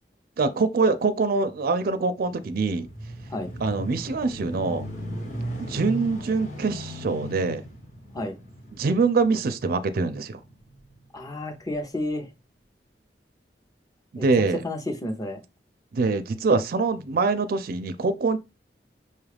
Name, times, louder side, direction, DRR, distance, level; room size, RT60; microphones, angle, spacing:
voice 1, 0.4-2.9 3.6-4.8 5.6-7.6 8.7-10.4 14.1-14.6 15.9-18.4, right 4 dB, 55° right, 0.4 m, -24 dB
sound 1, 2.4-11.1 11.7-11.8, equal, 50° left, 1.2 m, -37 dB
voice 2, 11.1-12.3 14.1-14.3 14.6-15.4, left 1 dB, 20° left, 0.6 m, -31 dB
5.5 x 2.3 x 3.3 m
head